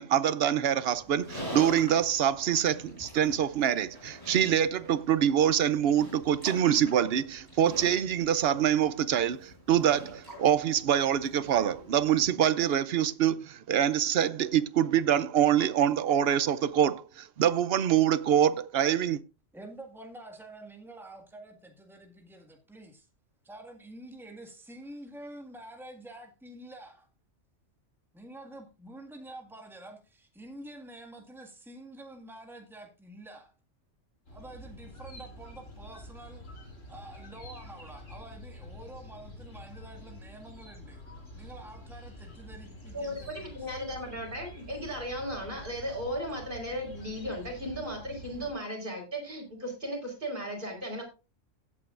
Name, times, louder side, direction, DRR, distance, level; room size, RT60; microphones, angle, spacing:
voice 1, 0.0-19.2, right 9 dB, 60° right, 0.8 m, -25 dB
Livestock farm animals working animals, 0.9-12.2, equal, 15° left, 7.7 m, -45 dB
voice 2, 19.5-23.1 23.4-27.1 28.1-33.5 34.3-36.4 36.9-41.0 41.4-43.7, right 1 dB, ahead, 1.8 m, -48 dB
sound 1, 34.3-48.5, left 1 dB, 85° left, 3.7 m, -47 dB
voice 3, 42.9-51.0, equal, 40° right, 4.8 m, -36 dB
16.0 x 8.5 x 2.5 m
omnidirectional pair, 1.3 m